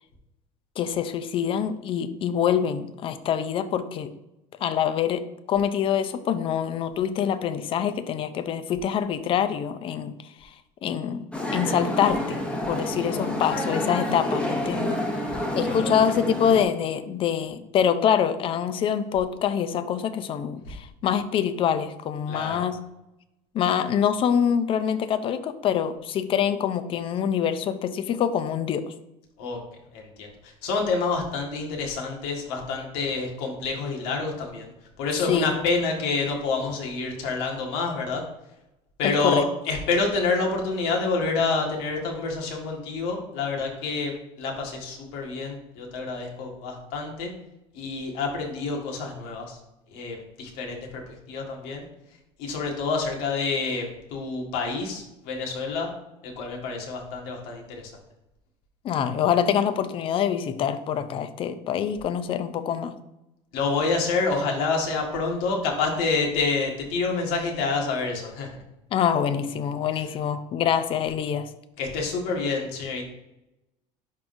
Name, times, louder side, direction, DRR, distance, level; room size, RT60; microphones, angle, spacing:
voice 1, 0.8-4.1 4.6-10.1 10.4-10.5 10.8-12.4 12.7-15.0 15.5-22.8 23.5-28.9 35.2-35.6 39.0-39.4 58.8-62.9 68.9-71.5, left 8 dB, 35° left, 11 dB, 0.5 m, -25 dB
sound 1, 11.3-16.6, left 1 dB, 5° left, 0.9 m, -28 dB
voice 2, 15.1-15.4 15.6-15.9 20.6-20.7 22.3-22.6 29.4-29.6 29.9-34.7 35.0-38.2 39.0-44.1 44.4-47.3 47.7-49.6 49.9-51.8 52.4-55.9 56.2-57.8 63.5-68.5 69.9-70.0 71.8-73.1, left 4 dB, 85° left, 0 dB, 1.6 m, -28 dB
10.5 x 3.7 x 2.6 m, 0.93 s
cardioid pair, 145°, 15 cm